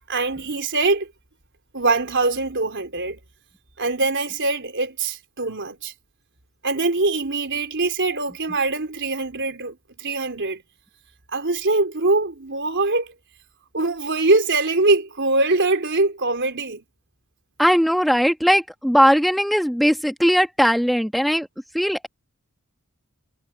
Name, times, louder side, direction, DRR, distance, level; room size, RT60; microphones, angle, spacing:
voice 1, 0.1-1.1 1.7-3.2 3.8-5.9 6.6-10.6 11.3-13.1 13.7-16.8, right 3 dB, 55° right, 4.1 m, -23 dB
voice 2, 17.6-21.5 21.7-22.1, equal, ahead, 1.5 m, -19 dB
head